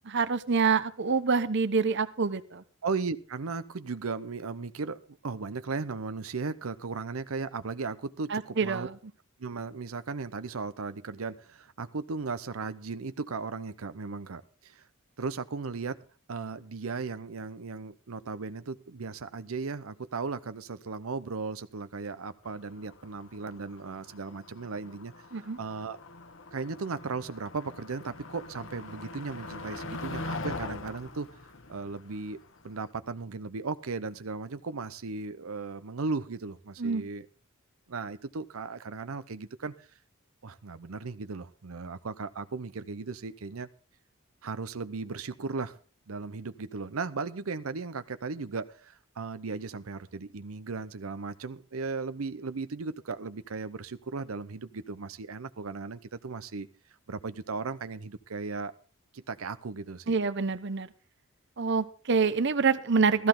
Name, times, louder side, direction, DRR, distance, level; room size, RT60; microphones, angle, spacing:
voice 1, 0.1-2.6 8.3-9.0 25.3-25.6 36.8-37.0 60.1-60.9 61.6-63.3, right 5 dB, 55° right, 13 dB, 0.8 m, -26 dB
voice 2, 2.8-8.9 9.4-14.8 15.2-16.0 16.3-25.1 25.4-26.0 26.5-31.3 31.7-32.4 32.6-37.3 37.9-39.9 40.4-43.7 44.4-45.8 46.1-56.7 57.1-58.7 59.1-60.1, right 4 dB, 85° right, 12 dB, 0.7 m, -36 dB
Motor vehicle (road), 22.5-32.9, left 2 dB, 65° left, 1.3 m, -42 dB
15.5 x 14.0 x 3.8 m, 0.37 s
head